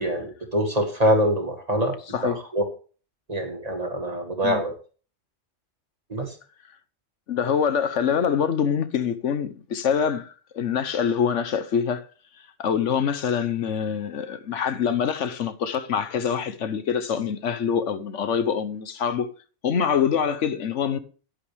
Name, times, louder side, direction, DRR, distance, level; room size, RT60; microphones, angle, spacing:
voice 1, 0.0-2.0 2.2-2.6 3.3-4.7 6.1-6.4, right 1 dB, 30° right, 2.1 m, -24 dB
voice 2, 7.3-12.0 12.6-19.3 19.6-21.0, left 7 dB, 75° left, 1.2 m, -25 dB
10.5 x 10.0 x 3.4 m
omnidirectional pair, 1.3 m